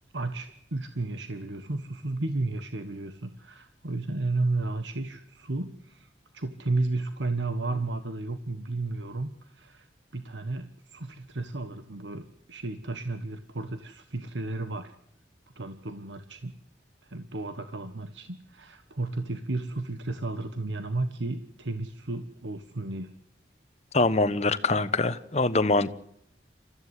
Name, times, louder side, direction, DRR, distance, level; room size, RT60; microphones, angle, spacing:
voice 1, 0.1-9.9 10.1-14.9 15.5-16.5 17.0-23.1, right 2 dB, 85° right, 1.3 m, -33 dB
voice 2, 23.9-25.9, left 2 dB, 35° left, 1.1 m, -24 dB
29.0 x 14.5 x 8.2 m
head